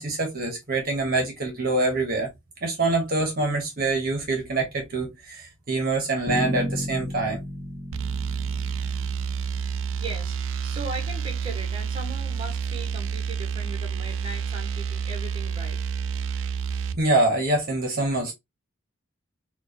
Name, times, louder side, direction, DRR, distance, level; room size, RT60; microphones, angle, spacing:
voice 1, 0.0-2.3 2.6-7.4 17.0-18.3, right 2 dB, 45° right, 1.0 m, -25 dB
Bass guitar, 6.3-10.2, equal, 30° left, 0.9 m, -33 dB
sound 1, 7.9-17.0, right 6 dB, 65° right, 0.3 m, -29 dB
voice 2, 9.5-15.8, right 2 dB, 25° right, 1.2 m, -39 dB
4.5 x 2.3 x 2.7 m
head